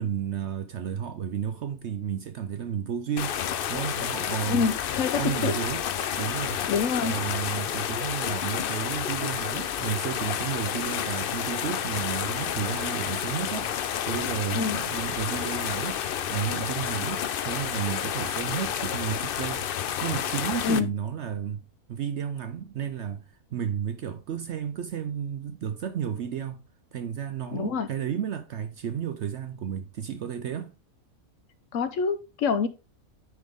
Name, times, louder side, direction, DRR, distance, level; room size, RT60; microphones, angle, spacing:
voice 1, 0.0-3.4 3.7-4.7 5.2-5.8 6.2-6.6 7.0-19.6 20.0-30.7, right 8 dB, 65° right, 0.7 m, -32 dB
sound 1, 3.2-20.8, left 9 dB, 85° left, 0.4 m, -30 dB
voice 2, 4.5-5.5 6.7-7.1 14.5-14.8 20.6-20.9 27.5-27.9 31.7-32.7, left 5 dB, 65° left, 1.0 m, -26 dB
9.9 x 3.8 x 3.5 m
omnidirectional pair, 1.6 m